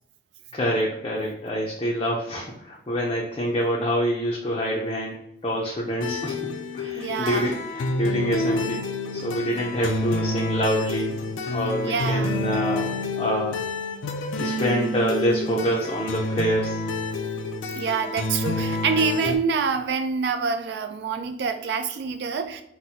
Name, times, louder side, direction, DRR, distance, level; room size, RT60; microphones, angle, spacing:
voice 1, 0.5-5.2 5.4-6.4 6.7-8.8 9.1-11.2 11.5-13.6 14.4-16.8, equal, 25° left, -4 dB, 0.4 m, -26 dB
sound 1, 6.0-19.4, left 2 dB, 90° left, 0.4 m, -28 dB
voice 2, 6.9-7.6 11.8-12.4 17.7-22.6, right 5 dB, 60° right, 8 dB, 0.3 m, -26 dB
4.2 x 2.1 x 2.7 m, 0.79 s
head